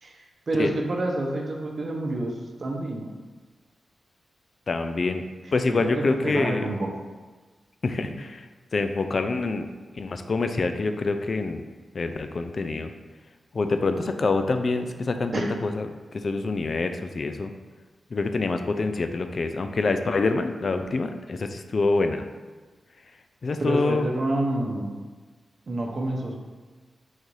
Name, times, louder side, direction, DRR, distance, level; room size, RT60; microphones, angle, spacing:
voice 1, 0.5-2.3 2.6-3.1 5.8-6.9 8.0-8.1 15.3-15.5 23.6-25.0 25.7-26.3, right 1 dB, 50° right, 1 dB, 0.7 m, -28 dB
voice 2, 4.7-5.2 5.5-6.7 7.8-8.5 8.7-9.7 10.0-11.6 11.9-12.9 13.5-15.9 16.1-17.5 18.1-22.3 23.4-24.1, left 3 dB, 50° left, 7 dB, 0.3 m, -26 dB
3.9 x 2.6 x 4.6 m, 1.4 s
cardioid pair, 85°, 0 cm